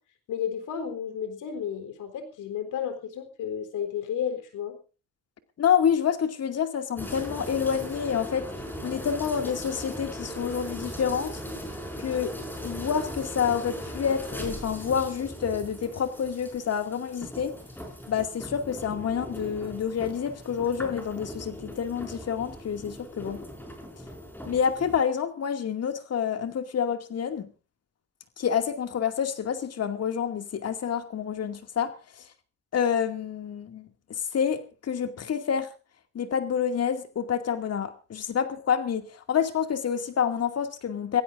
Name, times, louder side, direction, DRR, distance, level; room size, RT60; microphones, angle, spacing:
voice 1, 0.3-4.8, left 8 dB, 85° left, 3.8 m, -32 dB
voice 2, 5.6-8.4 8.8-11.4 12.0-12.4 12.6-17.5 18.1-23.4 24.5-27.5 28.4-32.2 32.7-35.7 36.1-41.2, left 7 dB, 55° left, 2.4 m, -28 dB
sound 1, 7.0-25.0, equal, 5° left, 5.4 m, -39 dB
26.0 x 16.0 x 2.6 m
cardioid pair, 90°, 30 cm